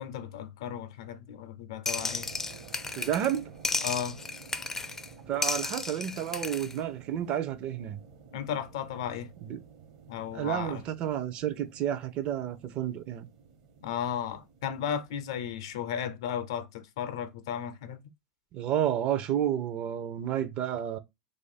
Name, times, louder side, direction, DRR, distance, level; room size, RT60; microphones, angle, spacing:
voice 1, 0.0-2.3 3.8-4.2 8.3-9.3 10.1-10.8 13.8-18.0, left 9 dB, 75° left, 0.5 m, -35 dB
sound 1, 1.9-3.4 3.6-5.1 5.4-6.7, left 3 dB, 15° left, 0.4 m, -33 dB
sound 2, 1.9-15.8, right 5 dB, 65° right, 1.0 m, -52 dB
voice 2, 3.0-3.5 5.3-8.0 9.4-9.6 10.3-13.3 18.5-21.0, right 10 dB, 45° right, 0.5 m, -31 dB
2.5 x 2.5 x 4.0 m
hypercardioid pair, 105°, 3 cm